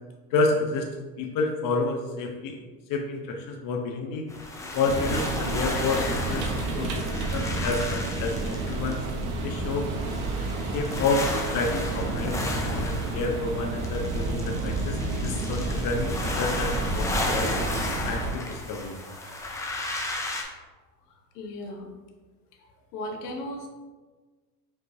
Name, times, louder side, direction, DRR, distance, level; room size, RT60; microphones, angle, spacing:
voice 1, 0.3-0.9 1.2-2.6 2.9-4.3 4.7-6.5 6.8-9.0 9.4-9.9 10.6-17.6 18.0-18.9, left 3 dB, 45° left, 2 dB, 0.7 m, -29 dB
sound 1, 4.3-20.4, left 2 dB, 10° left, 0.3 m, -34 dB
sound 2, 4.8-18.3, right 2 dB, 65° right, 1.0 m, -30 dB
voice 2, 21.1-21.9 22.9-23.7, left 1 dB, 80° left, 2 dB, 0.9 m, -36 dB
5.2 x 3.2 x 2.6 m, 1.3 s
supercardioid pair, 110°, 45 cm